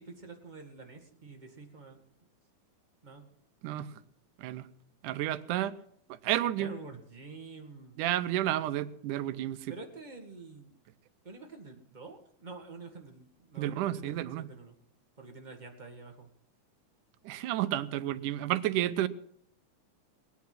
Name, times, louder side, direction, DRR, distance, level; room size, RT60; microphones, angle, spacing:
voice 1, 0.0-2.0 3.0-3.2 6.6-8.0 9.7-10.8 11.2-14.8 15.2-16.3 18.0-18.4, right 3 dB, 20° right, 3 dB, 1.4 m, -48 dB
voice 2, 5.0-5.7 6.2-6.7 8.0-9.6 13.6-14.5 17.3-19.1, right 13 dB, 90° right, 13 dB, 2.3 m, -31 dB
20.0 x 9.5 x 6.1 m, 0.67 s
omnidirectional pair, 3.5 m